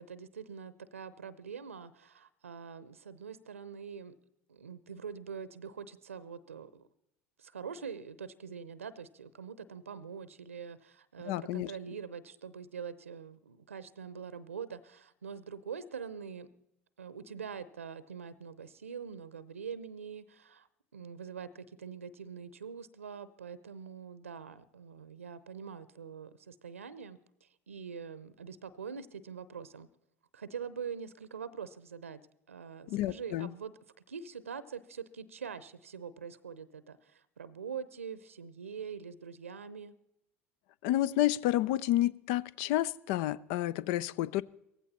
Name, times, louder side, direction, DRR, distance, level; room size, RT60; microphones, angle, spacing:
voice 1, 0.0-4.1 4.5-6.9 7.4-16.5 17.0-20.7 20.9-29.9 30.3-32.2 32.5-33.7 34.1-39.9, right 6 dB, 85° right, 0.7 m, -44 dB
voice 2, 11.3-11.7 32.9-33.5 40.8-44.4, left 14 dB, 60° left, 0.6 m, -30 dB
17.5 x 15.0 x 4.2 m
hypercardioid pair, 75°, 7 cm